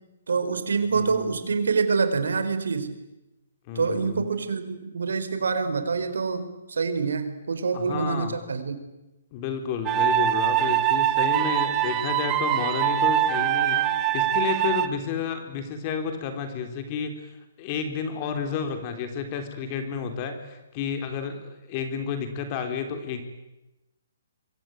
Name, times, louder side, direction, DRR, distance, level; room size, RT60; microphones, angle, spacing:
voice 1, 0.3-2.9 3.7-8.8, right 5 dB, 85° right, 10 dB, 4.7 m, -26 dB
voice 2, 0.9-1.4 3.7-4.3 7.7-8.4 9.3-13.9 14.1-17.3 17.6-23.2, left 6 dB, 30° left, 7 dB, 3.8 m, -31 dB
sound 1, 9.9-14.9, right 11 dB, 20° right, 1.4 m, -23 dB
26.5 x 23.0 x 9.3 m, 0.99 s
hypercardioid pair, 160°, 0 cm